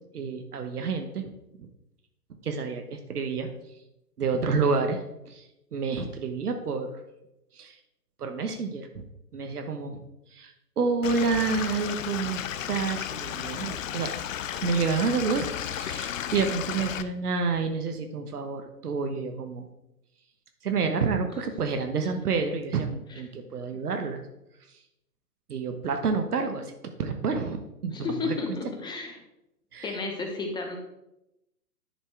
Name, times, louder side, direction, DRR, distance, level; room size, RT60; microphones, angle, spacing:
voice 1, 0.1-1.3 1.6-1.7 2.4-3.5 4.2-5.4 5.7-7.0 7.5-7.8 8.2-9.0 9.3-10.0 10.3-14.1 14.6-19.6 20.6-24.2 25.5-26.7 27.0-28.4 29.7-30.0, right 4 dB, 70° right, 5 dB, 1.1 m, -29 dB
Stream / Liquid, 11.0-17.0, left 10 dB, 55° left, 0.6 m, -34 dB
voice 2, 27.9-29.2 29.8-30.8, left 4 dB, 10° left, 3 dB, 0.9 m, -32 dB
10.5 x 4.3 x 4.6 m, 0.89 s
figure-of-eight pair, 120°, 47 cm